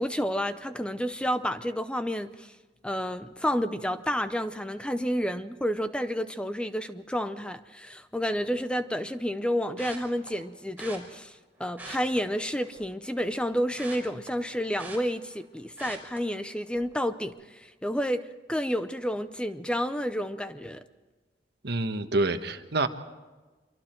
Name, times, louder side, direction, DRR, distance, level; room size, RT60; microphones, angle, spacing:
voice 1, 0.0-2.5 2.8-20.8, equal, 5° left, 0.7 m, -30 dB
sound 1, 9.8-10.3 10.8-11.0 11.7-12.9 13.2-15.4 15.8-16.2 16.7-16.9 17.2-17.3, right 3 dB, 10° right, 5.2 m, -43 dB
voice 2, 21.6-22.9, right 2 dB, 60° right, 1.4 m, -27 dB
26.5 x 24.0 x 4.5 m
head